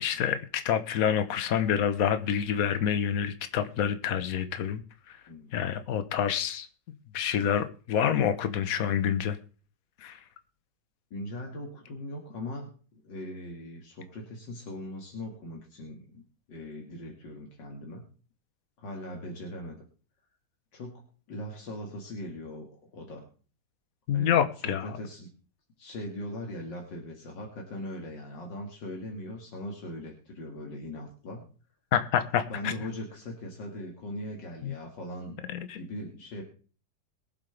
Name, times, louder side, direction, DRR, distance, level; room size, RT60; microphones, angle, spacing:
voice 1, 0.0-4.8 5.1-5.2 5.5-6.7 7.1-9.4 10.0-10.2 24.1-25.0 31.9-32.7 34.6-34.7 35.5-35.8, left 9 dB, 55° left, 10 dB, 1.3 m, -27 dB
voice 2, 11.1-16.2 16.5-18.1 18.8-19.8 20.7-23.3 24.1-25.3 25.8-31.5 32.5-35.4 35.8-36.4, left 1 dB, 85° left, 0 dB, 2.7 m, -40 dB
22.0 x 7.7 x 3.4 m, 0.39 s
omnidirectional pair, 1.9 m